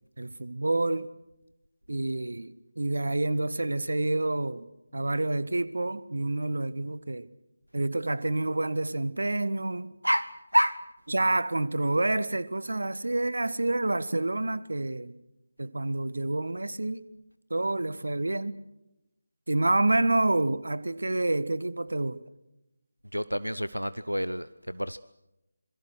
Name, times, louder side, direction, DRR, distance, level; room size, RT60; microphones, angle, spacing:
voice 1, 0.2-1.1 1.9-4.7 4.9-7.3 7.7-9.9 11.1-15.2 15.6-17.0 17.5-18.6 19.5-22.2, right 2 dB, 60° right, 1.2 m, -28 dB
voice 2, 10.0-10.8 23.1-25.0, equal, 90° right, 0.8 m, -28 dB
26.5 x 23.0 x 6.4 m
figure-of-eight pair, 160°, 0 cm